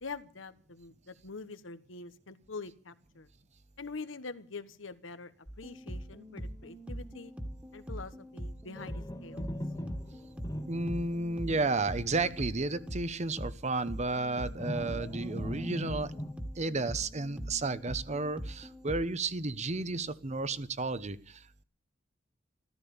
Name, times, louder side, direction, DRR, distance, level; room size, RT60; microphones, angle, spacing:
voice 1, 0.0-3.3 3.8-5.3 5.6-7.3 7.7-9.5, left 4 dB, 85° left, 12 dB, 1.3 m, -44 dB
sound 1, 5.5-19.0, equal, 5° right, 1.8 m, -42 dB
Foley Object Metal Oven Creaks Mono, 8.7-13.1 13.4-13.5 14.6-16.3, left 1 dB, 20° left, 0.9 m, -41 dB
voice 2, 10.7-16.1 16.6-21.6, right 3 dB, 35° right, 14 dB, 0.9 m, -32 dB
14.5 x 14.0 x 7.1 m, 0.43 s
head